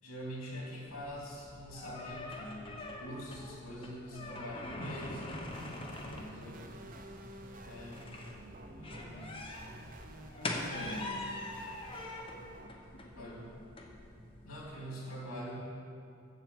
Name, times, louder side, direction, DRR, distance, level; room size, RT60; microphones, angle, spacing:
voice 1, 0.0-5.5 6.1-6.6 7.6-8.0 8.7-9.5 10.6-11.1 13.2-13.5 14.4-15.6, equal, 85° left, -4 dB, 2.8 m, -44 dB
sound 1, 0.9-14.7, left 2 dB, 25° left, 0.8 m, -44 dB
sound 2, 4.7-12.7, right 1 dB, 40° right, 0.6 m, -51 dB
voice 2, 5.6-6.7 8.3-8.6 10.1-11.0 12.7-13.6, left 2 dB, 60° left, -6 dB, 1.2 m, -54 dB
7.7 x 7.4 x 7.0 m, 2.4 s
head